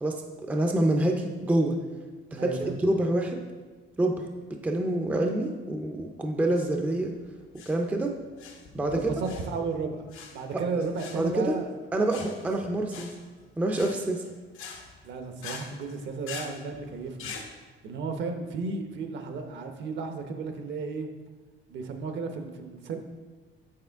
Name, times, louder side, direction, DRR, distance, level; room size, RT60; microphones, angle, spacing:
voice 1, 0.0-1.8 2.3-2.5 2.8-3.4 4.0-4.3 4.6-7.1 7.7-8.1 8.7-9.1 10.5-10.6 11.1-11.6 11.9-13.1 13.6-14.2, right 1 dB, 5° right, 2 dB, 0.4 m, -26 dB
voice 2, 2.4-2.8 8.9-10.0 10.3-11.7 15.0-17.4 17.8-21.1 21.7-23.0, right 4 dB, 60° right, 5 dB, 0.9 m, -33 dB
sound 1, 6.4-17.5, left 5 dB, 85° left, 1.0 m, -44 dB
7.3 x 6.6 x 3.5 m, 1.4 s
cardioid pair, 170°, 21 cm